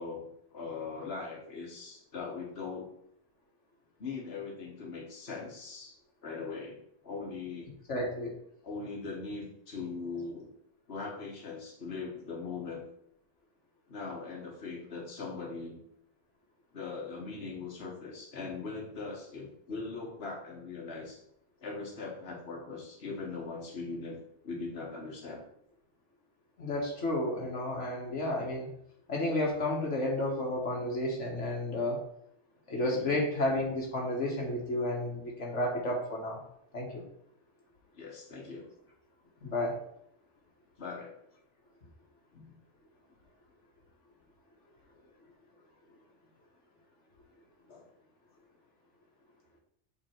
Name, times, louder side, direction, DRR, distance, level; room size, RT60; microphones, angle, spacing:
voice 1, 0.0-2.9 4.0-5.9 6.2-7.7 8.6-10.5 10.9-12.8 13.9-15.8 16.7-21.2 21.6-25.4 28.3-28.5 32.9-33.2 37.9-38.6 40.8-41.1 47.7-47.9, left 4 dB, 60° left, -2 dB, 1.7 m, -40 dB
voice 2, 7.9-8.3 26.6-28.7 29.1-32.0 32.7-36.4 36.7-37.0 39.4-39.7, left 1 dB, 75° left, -2 dB, 1.9 m, -31 dB
7.9 x 3.8 x 4.5 m, 0.72 s
omnidirectional pair, 1.2 m